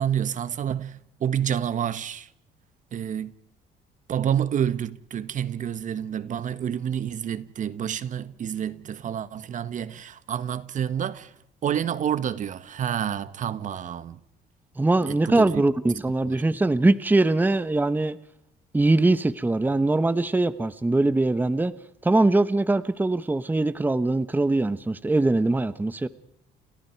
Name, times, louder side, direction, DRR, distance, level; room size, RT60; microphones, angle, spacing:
voice 1, 0.0-2.3 2.9-3.3 4.1-11.3 11.6-14.2 15.1-15.6 16.3-16.4, right 9 dB, 50° right, 1.4 m, -28 dB
voice 2, 14.8-18.2 18.7-21.7 22.0-26.1, right 2 dB, 10° right, 1.1 m, -22 dB
30.0 x 28.0 x 4.6 m
cardioid pair, 110°, 17 cm